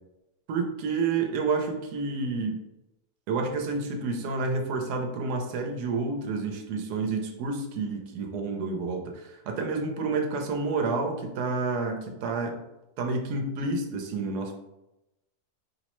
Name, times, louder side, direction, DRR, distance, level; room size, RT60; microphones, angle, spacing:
voice 1, 0.5-2.5 3.3-12.6 13.0-14.5, right 4 dB, 80° right, 3 dB, 1.1 m, -29 dB
4.7 x 2.0 x 2.9 m, 0.93 s
omnidirectional pair, 1.8 m